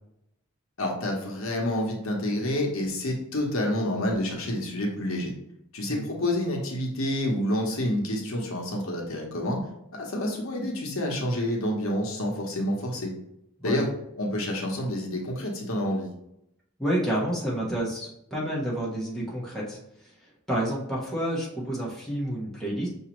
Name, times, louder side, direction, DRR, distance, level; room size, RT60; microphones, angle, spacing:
voice 1, 0.8-5.3 5.7-9.6 9.9-13.1 13.6-13.9 14.2-16.1, left 1 dB, 75° left, 0 dB, 1.0 m, -28 dB
voice 2, 16.8-22.9, right 1 dB, ahead, -6 dB, 1.2 m, -30 dB
5.9 x 2.7 x 3.0 m, 0.80 s
head